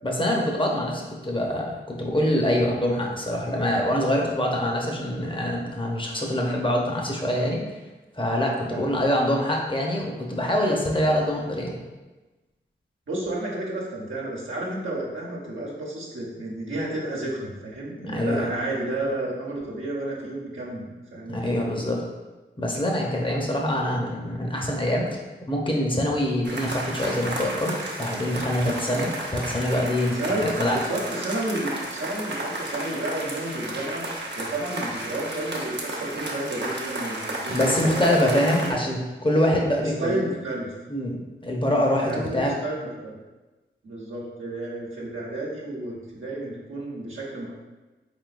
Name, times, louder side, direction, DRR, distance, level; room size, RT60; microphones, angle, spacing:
voice 1, 0.0-7.6 8.2-11.8 18.0-18.5 21.3-22.0 22.6-30.8 37.5-40.2 40.9-41.2 41.4-42.5, left 1 dB, 25° left, -1 dB, 0.9 m, -25 dB
voice 2, 8.7-9.0 13.1-21.7 30.2-34.0 34.3-38.8 39.8-40.7 42.0-43.2 43.8-47.5, right 1 dB, 80° right, -5 dB, 1.0 m, -31 dB
sound 1, 26.4-38.7, right 1 dB, 60° right, 0.8 m, -33 dB
4.0 x 3.7 x 2.5 m, 1.2 s
cardioid pair, 40°, 20 cm